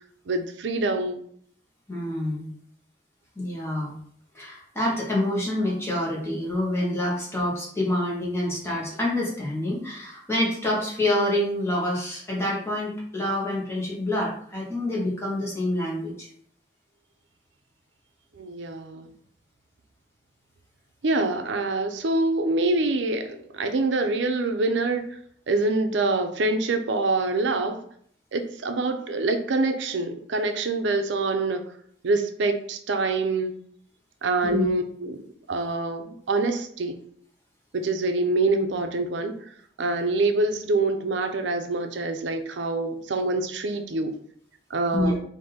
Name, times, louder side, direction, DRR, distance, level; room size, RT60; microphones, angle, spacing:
voice 1, 0.3-1.2 18.4-19.1 21.0-25.0 25.5-27.8 28.3-31.6 32.0-33.5 34.2-35.2 35.5-36.9 37.7-39.3 39.8-44.1 44.7-45.2, right 2 dB, 85° right, 6 dB, 0.5 m, -25 dB
voice 2, 1.9-2.4 3.4-3.9 4.3-16.3 34.4-34.7 44.9-45.2, left 1 dB, 15° left, -4 dB, 1.2 m, -27 dB
3.6 x 2.6 x 4.1 m, 0.63 s
head